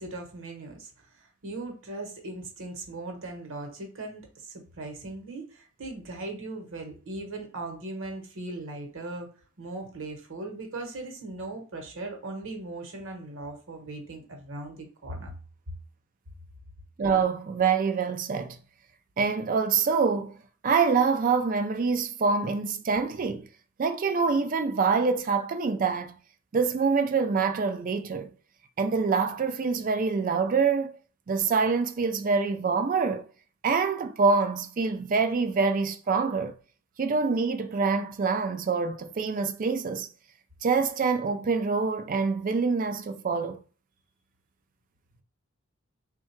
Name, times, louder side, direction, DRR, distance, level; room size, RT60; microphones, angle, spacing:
voice 1, 0.0-9.3 9.6-15.3, right 2 dB, 60° right, 1.0 m, -39 dB
voice 2, 17.0-18.6 19.2-20.4 20.6-23.5 23.8-26.2 26.5-28.3 28.8-31.0 31.3-33.3 33.6-36.5 37.0-40.1 40.6-43.6, right 5 dB, 40° right, 0.4 m, -25 dB
3.6 x 2.2 x 4.4 m
head